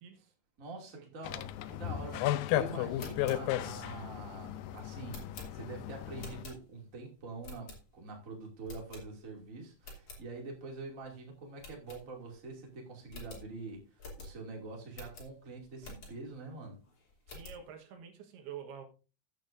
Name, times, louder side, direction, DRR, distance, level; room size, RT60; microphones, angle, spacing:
voice 1, 0.0-0.3 0.9-1.3 17.3-18.8, right 8 dB, 75° right, 4 dB, 3.2 m, -48 dB
voice 2, 0.6-13.8 14.2-16.8, right 3 dB, 25° right, 0 dB, 2.2 m, -45 dB
sound 1, 1.2-6.4, left 13 dB, 85° left, 2.0 m, -35 dB
sound 2, 3.0-7.0 7.4-8.2 8.6-9.4 9.7-10.2 10.7-10.8 11.0-11.1 11.6-12.5 12.7-12.8 13.1-16.4 16.8-17.7, left 2 dB, 40° left, 3.6 m, -49 dB
14.0 x 8.6 x 2.6 m, 0.33 s
omnidirectional pair, 4.7 m